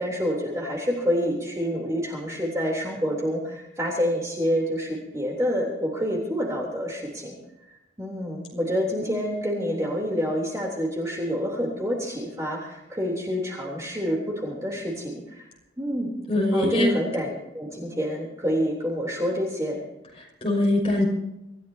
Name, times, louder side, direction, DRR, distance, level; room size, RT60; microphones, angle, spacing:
voice 1, 0.0-7.4 8.0-15.4 15.8-16.1 16.5-17.3 17.5-19.8, equal, 15° right, -2 dB, 3.3 m, -27 dB
voice 2, 16.3-17.0 20.2-21.1, left 1 dB, 30° left, -2 dB, 5.7 m, -23 dB
25.5 x 14.5 x 2.8 m, 0.92 s
head